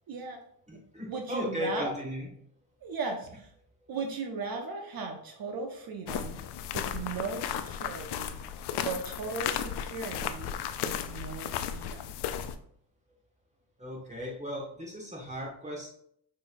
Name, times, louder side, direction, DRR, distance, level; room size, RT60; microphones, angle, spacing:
voice 1, 0.1-0.4 0.7-0.8 1.1-1.9 2.8-3.5 3.9-6.4 6.7-8.4 8.8-10.5 10.8-12.0, right 4 dB, 55° right, 3 dB, 0.9 m, -37 dB
voice 2, 0.7-2.3 13.8-15.9, left 1 dB, 15° right, -3 dB, 1.6 m, -36 dB
sound 1, 6.1-12.6, left 9 dB, 65° left, 0.5 m, -35 dB
5.9 x 3.3 x 2.6 m, 0.67 s
cardioid pair, 80°, 43 cm